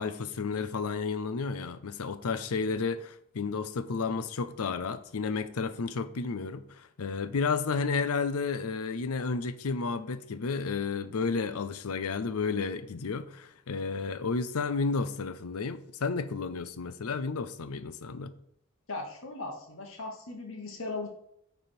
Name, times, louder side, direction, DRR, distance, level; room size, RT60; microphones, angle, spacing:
voice 1, 0.0-18.3, left 4 dB, 85° left, 0.6 m, -32 dB
voice 2, 18.9-21.1, left 3 dB, 60° left, 1.2 m, -38 dB
9.1 x 3.4 x 4.4 m
head